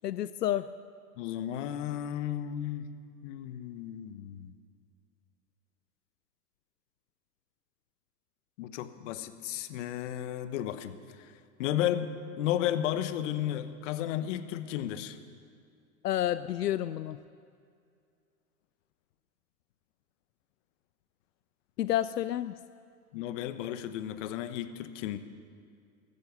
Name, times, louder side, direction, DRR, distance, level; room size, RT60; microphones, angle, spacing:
voice 1, 0.0-0.7 16.0-17.2 21.8-22.5, left 12 dB, 85° left, 15 dB, 0.6 m, -29 dB
voice 2, 1.2-2.9 3.2-4.5 8.6-11.0 11.6-12.1 12.4-15.2 23.1-25.2, left 11 dB, 50° left, 12 dB, 1.1 m, -33 dB
14.0 x 12.5 x 6.9 m, 2.3 s
hypercardioid pair, 110°, 47 cm